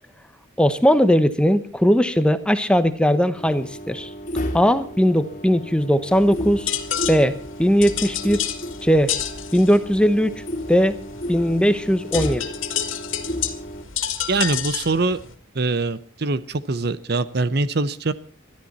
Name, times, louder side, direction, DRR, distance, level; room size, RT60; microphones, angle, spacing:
voice 1, 0.6-4.1 4.5-6.7 7.1-8.4 8.8-9.1 9.5-10.3 10.7-11.0 11.3-12.5, equal, 5° left, 11 dB, 0.9 m, -19 dB
sound 1, 3.3-13.8, equal, 40° left, 2.6 m, -33 dB
sound 2, 6.1-15.3, left 9 dB, 80° left, 2.3 m, -30 dB
voice 2, 14.3-15.2 15.5-18.1, right 3 dB, 50° right, 14 dB, 0.8 m, -23 dB
21.5 x 13.0 x 4.2 m, 0.37 s
head